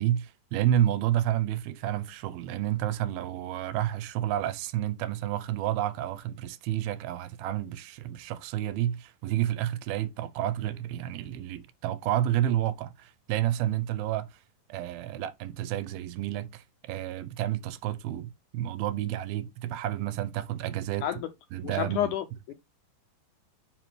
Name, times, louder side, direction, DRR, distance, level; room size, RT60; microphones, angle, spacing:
voice 1, 0.0-14.4 14.7-21.1 21.5-22.1, right 12 dB, 85° right, 2.5 m, -30 dB
voice 2, 21.6-22.5, left 11 dB, 90° left, 1.8 m, -30 dB
7.4 x 5.9 x 3.2 m
omnidirectional pair, 4.2 m